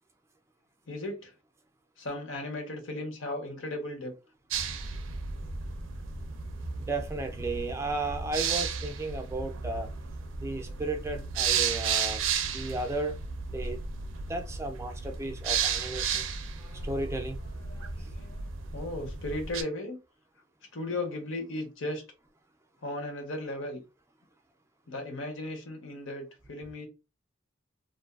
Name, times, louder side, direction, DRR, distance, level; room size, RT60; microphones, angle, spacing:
voice 1, 0.9-1.3 2.0-4.1 10.6-10.8 16.6-16.9 17.7-20.0 20.7-22.0 22.8-23.8 24.9-26.9, left 1 dB, 90° left, 0.9 m, -36 dB
sound 1, 4.5-19.6, right 6 dB, 90° right, 0.4 m, -33 dB
voice 2, 6.8-9.9 10.4-13.2 13.5-13.8 14.3-16.3 16.8-17.4 18.0-18.1, right 2 dB, 15° right, 0.3 m, -34 dB
2.5 x 2.3 x 2.3 m
head